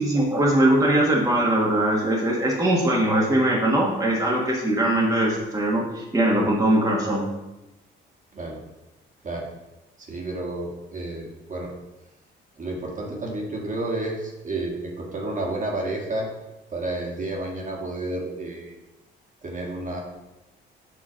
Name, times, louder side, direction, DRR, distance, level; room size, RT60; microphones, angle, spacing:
voice 1, 0.0-7.2, right 1 dB, 15° right, -4 dB, 1.3 m, -21 dB
voice 2, 10.0-11.7 12.6-16.3 16.7-18.8 19.4-20.0, right 2 dB, 40° right, -2 dB, 1.6 m, -31 dB
7.4 x 3.0 x 5.0 m, 1.0 s
cardioid pair, 90°, 20 cm